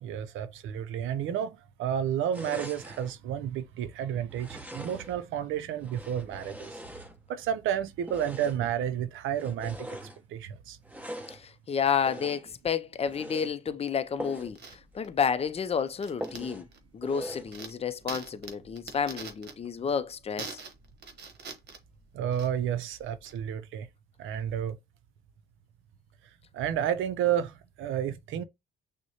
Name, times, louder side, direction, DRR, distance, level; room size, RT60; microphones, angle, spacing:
voice 1, 0.0-6.8 7.3-10.0 10.3-10.8 22.1-23.9 24.2-24.8 26.5-28.4, right 9 dB, 80° right, 0.5 m, -31 dB
sound 1, 2.3-3.1 4.3-5.2 5.8-7.5 8.0-8.7 9.3-10.2 10.8-11.4 12.0-12.6 13.0-13.5 14.2-14.6 14.9-15.0 15.4-15.5 16.2-16.7 17.0-17.5, equal, 10° right, 0.9 m, -42 dB
voice 2, 11.3-14.6 14.9-16.7 16.9-20.6, left 7 dB, 30° left, 0.5 m, -30 dB
sound 2, 14.0-23.4, right 5 dB, 55° right, 1.0 m, -46 dB
6.1 x 2.1 x 2.8 m
cardioid pair, 90°, 20 cm